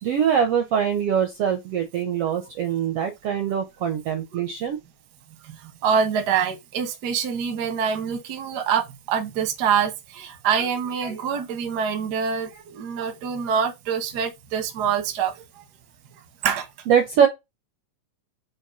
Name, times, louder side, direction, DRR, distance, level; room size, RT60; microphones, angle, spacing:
voice 1, 0.0-4.8 16.9-17.3, right 8 dB, 65° right, 1.6 m, -23 dB
voice 2, 5.8-15.3 16.4-16.6, right 7 dB, 50° right, 1.2 m, -25 dB
6.3 x 3.2 x 5.5 m
omnidirectional pair, 3.7 m